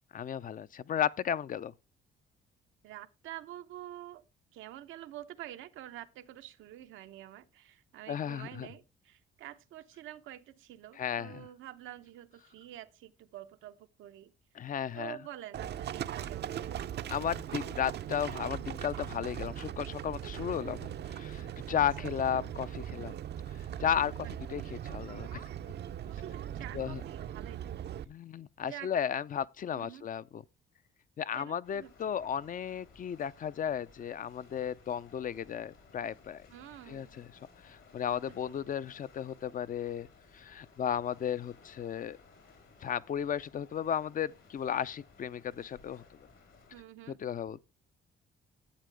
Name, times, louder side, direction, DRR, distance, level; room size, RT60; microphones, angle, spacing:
voice 1, 0.1-1.7 8.1-8.7 11.0-11.4 14.6-15.2 17.1-23.2 23.8-25.4 26.7-27.0 28.1-30.4 31.2-36.4 36.9-37.3 37.6-40.1 40.3-42.2 42.8-46.0 47.2-47.6, left 8 dB, 45° left, 0.5 m, -34 dB
voice 2, 2.8-4.2 4.5-14.3 14.9-16.8 21.7-22.1 24.2-24.3 26.1-28.1 28.6-28.9 29.7-30.1 31.3-32.2 36.5-37.3 38.1-38.2 46.7-47.2, right 13 dB, 90° right, 0.8 m, -48 dB
Livestock farm animals working animals, 15.5-28.0, right 10 dB, 60° right, 0.6 m, -40 dB
sound 1, 31.6-46.8, left 4 dB, 80° left, 4.5 m, -59 dB
11.5 x 8.3 x 3.4 m
cardioid pair, 90°, 20 cm